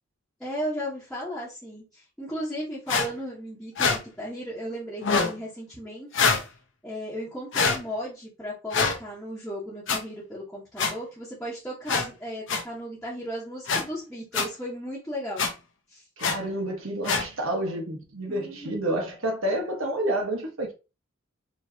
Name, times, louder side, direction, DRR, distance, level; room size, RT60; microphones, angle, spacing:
voice 1, 0.4-6.3 6.8-15.4 15.9-16.0 18.3-18.7, equal, 5° left, 1.2 m, -35 dB
sound 1, 2.9-3.1 3.8-4.0 5.0-5.3 6.1-6.4 7.5-7.8 8.7-8.9 9.9-10.0 10.8-10.9 11.9-12.0 12.5-12.6 13.7-13.8 14.3-14.4 15.4-15.5 16.2-16.3 17.0-17.2, left 5 dB, 65° left, 0.9 m, -23 dB
voice 2, 16.2-20.7, right 1 dB, 85° right, 1.3 m, -29 dB
4.7 x 3.1 x 2.8 m
head